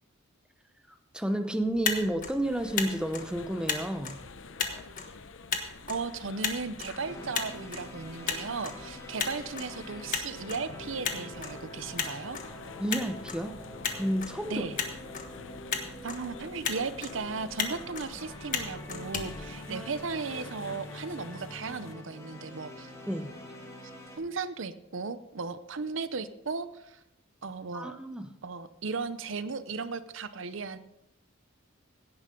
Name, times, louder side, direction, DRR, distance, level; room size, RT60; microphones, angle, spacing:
voice 1, 0.9-4.2 12.8-13.6 13.9-14.6 19.7-19.9 23.1-23.3 27.7-28.3, right 1 dB, 5° right, 7 dB, 0.7 m, -31 dB
Motor vehicle (road), 1.6-20.2, left 6 dB, 40° left, 1.4 m, -37 dB
sound 1, 2.4-21.9, left 4 dB, 65° left, 0.7 m, -48 dB
voice 2, 5.9-12.4 14.5-14.8 16.0-22.9 24.2-27.0 27.4-28.0 28.4-30.8, right 4 dB, 70° right, 13 dB, 0.7 m, -36 dB
sound 2, 7.0-24.2, left 1 dB, 15° left, 2.4 m, -46 dB
16.5 x 10.5 x 3.8 m, 0.85 s
head